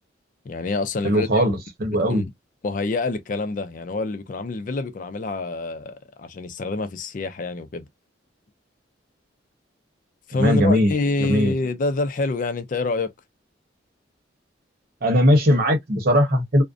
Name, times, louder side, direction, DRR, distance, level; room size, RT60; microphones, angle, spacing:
voice 1, 0.5-1.5 2.1-2.2 2.6-7.9 10.3-13.1, left 3 dB, 45° left, 0.4 m, -26 dB
voice 2, 1.0-2.2 10.4-10.9 11.2-11.5 15.0-16.6, equal, 50° right, 0.9 m, -19 dB
2.5 x 2.1 x 2.3 m
head